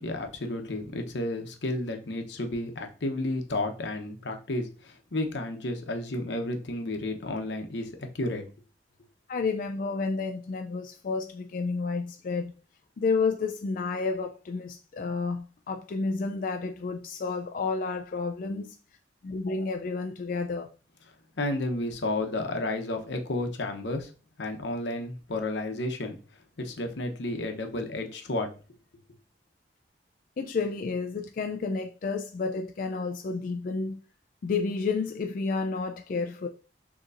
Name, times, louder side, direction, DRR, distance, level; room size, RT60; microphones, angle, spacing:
voice 1, 0.0-8.4 21.4-24.1 24.4-26.2 26.6-28.5, left 2 dB, 85° left, 0.8 m, -32 dB
voice 2, 9.3-12.5 13.0-18.7 19.2-20.7 30.4-34.0 34.4-36.5, left 4 dB, 50° left, 0.3 m, -30 dB
6.6 x 2.9 x 2.5 m
head